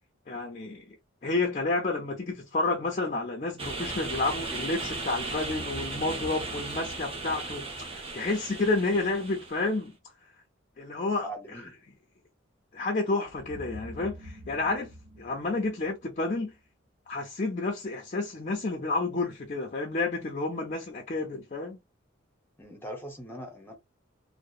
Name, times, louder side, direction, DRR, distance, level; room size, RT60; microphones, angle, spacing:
voice 1, 0.3-1.0 1.2-9.9 10.8-11.6 12.7-14.9 15.2-16.5 17.1-21.8, left 3 dB, 35° left, 0.5 m, -30 dB
sound 1, 3.6-9.8, right 3 dB, 30° right, 0.8 m, -37 dB
sound 2, 5.3-8.3 13.3-16.5, equal, 85° right, 0.6 m, -46 dB
voice 2, 11.2-11.7 22.6-23.7, equal, 10° left, 0.9 m, -40 dB
2.8 x 2.0 x 2.4 m
head